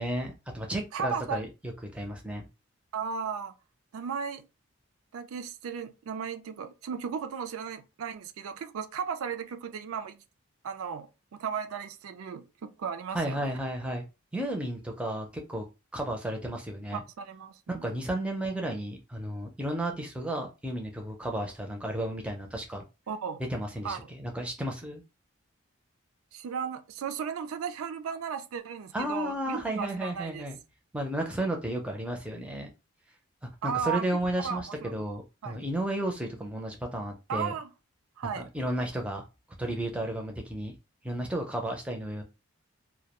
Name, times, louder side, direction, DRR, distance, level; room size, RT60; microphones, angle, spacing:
voice 1, 0.0-2.4 13.1-14.0 14.3-15.6 15.9-17.0 17.7-22.8 23.5-25.0 28.9-30.6 30.9-32.7 33.6-37.5 38.5-39.2 39.6-40.7 41.0-42.2, right 1 dB, 5° right, 0.4 m, -33 dB
voice 2, 0.9-1.4 2.9-3.5 3.9-4.4 5.1-10.2 10.6-13.6 16.9-17.9 23.1-23.4 23.8-24.1 26.3-30.5 33.6-34.1 34.4-34.9 35.4-35.6 37.3-37.7 38.2-38.5, right 6 dB, 75° right, 0.4 m, -35 dB
2.2 x 2.1 x 2.9 m
head